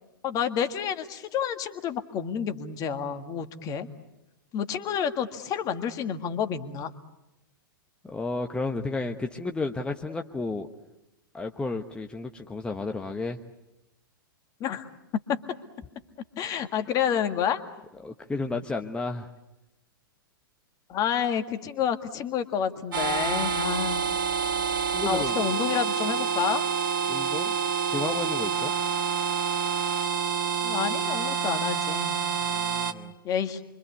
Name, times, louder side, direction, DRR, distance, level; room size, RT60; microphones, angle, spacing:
voice 1, 0.2-3.9 4.5-6.9 14.6-14.9 15.3-15.4 16.4-17.6 20.9-24.1 25.1-26.7 30.6-32.2 33.2-33.6, left 8 dB, 30° left, 9 dB, 1.9 m, -29 dB
voice 2, 8.0-10.7 11.3-13.4 18.0-19.3 24.9-25.5 27.1-27.6 27.9-28.7 32.4-33.1, left 3 dB, 10° left, 4 dB, 1.2 m, -32 dB
sound 1, 22.9-32.9, right 6 dB, 70° right, 1.8 m, -27 dB
28.0 x 25.0 x 8.4 m, 0.91 s
figure-of-eight pair, 105°, 12 cm